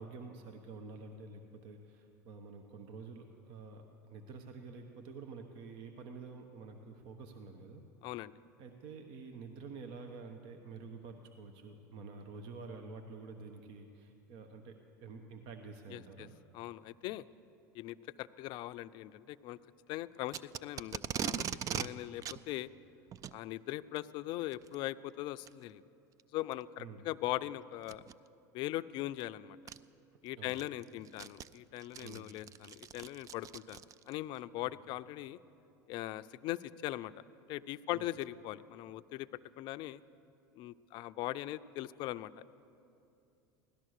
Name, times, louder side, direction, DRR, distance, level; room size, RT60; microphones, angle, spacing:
voice 1, 0.0-7.8 8.6-16.3 21.7-21.9 26.8-27.0 30.4-30.6 32.0-32.3 37.9-38.1, right 4 dB, 60° right, 5 dB, 1.1 m, -49 dB
voice 2, 8.0-8.3 15.9-16.3 16.5-17.2 17.7-19.6 19.9-22.7 23.3-25.8 26.3-28.0 28.5-29.6 30.2-33.8 34.1-35.4 35.9-37.1 37.5-39.3 39.6-40.0 40.6-42.5, left 15 dB, 55° left, 14 dB, 0.4 m, -40 dB
Packing tape duct tape, 20.3-21.9 22.2-22.4 23.1-23.4 24.5-24.8 25.5-25.6 26.2-26.3 27.8-28.1 29.2-29.3 29.7-29.8 30.3-34.2, right 9 dB, 35° right, 0.4 m, -40 dB
17.0 x 12.5 x 6.6 m, 2.6 s
hypercardioid pair, 95°, 10 cm